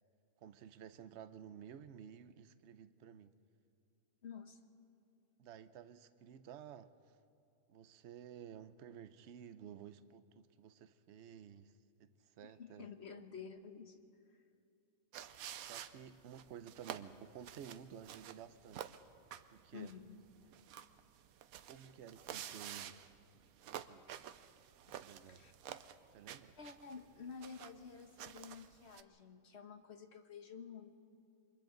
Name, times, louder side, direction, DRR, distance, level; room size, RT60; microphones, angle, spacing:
voice 1, 0.4-3.3 5.4-7.2 7.7-11.7 12.0-12.9 15.6-18.9 19.5-19.9 21.7-23.0 23.6-24.1 25.0-25.4 26.1-26.6, right 9 dB, 60° right, 12 dB, 0.9 m, -53 dB
voice 2, 4.2-4.6 12.4-14.0 19.7-20.2 21.8-22.0 25.3-25.5 26.6-30.9, left 6 dB, 55° left, 7 dB, 1.3 m, -51 dB
sound 1, 15.1-29.0, right 10 dB, 85° right, 1.1 m, -51 dB
28.5 x 24.5 x 3.9 m, 2.6 s
omnidirectional pair, 1.4 m